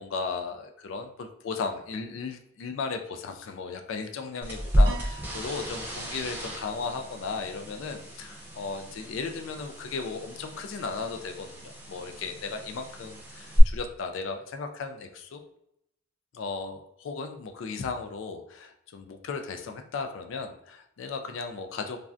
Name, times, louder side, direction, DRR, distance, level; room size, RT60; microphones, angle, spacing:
voice 1, 0.0-15.4 16.3-22.0, left 4 dB, 70° left, 6 dB, 0.3 m, -36 dB
sound 1, 4.4-13.6, equal, 10° right, 0.6 m, -32 dB
Piano, 4.9-7.3, right 6 dB, 60° right, 0.4 m, -47 dB
3.2 x 2.5 x 2.3 m, 0.77 s
head